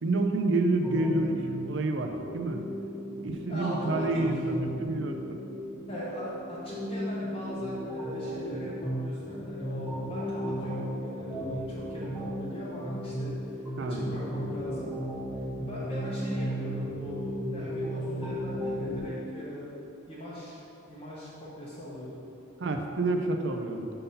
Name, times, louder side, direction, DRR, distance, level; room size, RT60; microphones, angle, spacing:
voice 1, 0.0-2.6 3.2-5.4 13.8-14.2 22.6-23.9, right 2 dB, 60° right, 5 dB, 0.5 m, -29 dB
sound 1, 0.8-19.0, equal, ahead, 0.7 m, -35 dB
voice 2, 3.5-4.1 5.9-13.3 13.9-14.9 15.6-19.7 20.1-20.6 20.9-22.2, equal, 25° left, -8 dB, 0.9 m, -40 dB
5.4 x 3.8 x 5.5 m, 2.9 s
head